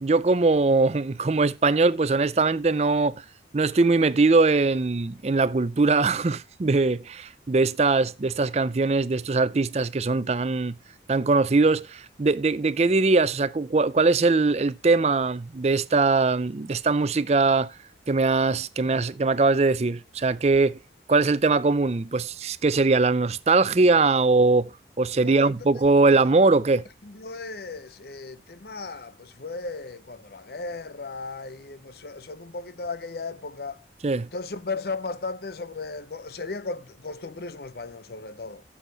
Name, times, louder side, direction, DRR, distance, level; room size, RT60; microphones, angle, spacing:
voice 1, 0.0-3.2 3.5-10.7 11.1-17.7 18.1-20.8 21.1-24.7 25.0-26.8 34.0-34.3, right 3 dB, 35° right, 0.5 m, -21 dB
voice 2, 25.2-25.6 27.0-33.8 34.3-38.6, left 3 dB, 60° left, 0.7 m, -36 dB
12.0 x 7.2 x 3.9 m
head